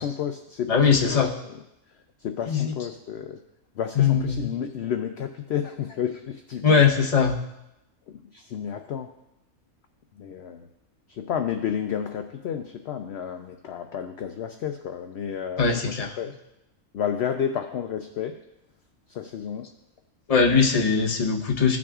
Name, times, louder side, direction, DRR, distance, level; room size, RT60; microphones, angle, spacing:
voice 1, 0.0-1.3 2.2-3.4 3.8-6.8 8.1-9.1 10.2-10.7 11.1-16.3 16.9-18.4 19.1-19.7, left 8 dB, 60° left, 6 dB, 0.7 m, -31 dB
voice 2, 0.7-1.3 2.5-2.7 3.9-4.5 6.6-7.4 15.6-16.2 20.3-21.8, left 5 dB, 30° left, 0 dB, 0.8 m, -21 dB
16.5 x 6.1 x 2.4 m, 0.89 s
omnidirectional pair, 1.6 m